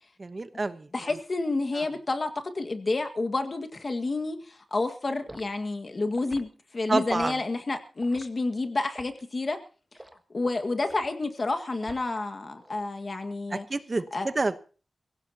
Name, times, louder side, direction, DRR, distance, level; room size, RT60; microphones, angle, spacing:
voice 1, 0.2-0.9 1.8-1.9 6.9-7.3 13.5-14.6, right 3 dB, 35° right, 10 dB, 1.0 m, -28 dB
voice 2, 0.9-9.6 10.3-13.7 14.1-14.3, left 3 dB, 40° left, 7 dB, 1.8 m, -30 dB
Liquid, 5.3-5.5 6.1-6.5 7.1-7.4 8.0-8.3 8.9-9.2 9.9-10.2 10.9-11.1 11.8-12.2 12.6-12.9, right 1 dB, 15° right, 1.3 m, -46 dB
23.0 x 16.5 x 2.9 m, 0.37 s
wide cardioid pair, 115°, 0 cm